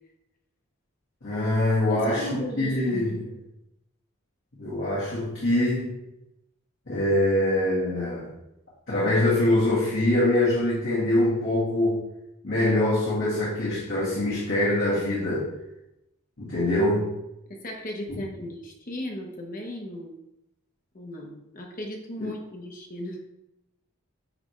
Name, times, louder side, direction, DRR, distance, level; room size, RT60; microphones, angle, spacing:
voice 1, 1.2-3.2 4.6-5.9 6.9-8.3 8.9-12.0 12.4-15.5 16.4-17.1 18.1-18.2 22.2-22.3, left 1 dB, 60° left, -9 dB, 1.8 m, -24 dB
voice 2, 1.9-3.2 17.5-20.2 20.9-23.2, left 1 dB, 40° left, 1 dB, 0.9 m, -36 dB
9.0 x 3.4 x 3.2 m, 0.88 s
head